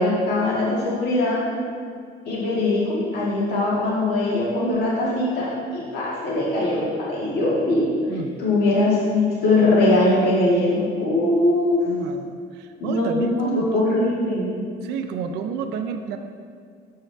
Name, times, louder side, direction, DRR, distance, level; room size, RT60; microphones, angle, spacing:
voice 1, 0.0-1.4 2.3-7.9 8.4-11.8 12.8-14.5, left 2 dB, 70° left, -6 dB, 1.9 m, -21 dB
voice 2, 11.9-14.1 14.8-16.2, right 7 dB, 90° right, 7 dB, 0.5 m, -30 dB
7.3 x 7.2 x 3.3 m, 2.1 s
cardioid pair, 110°, 17 cm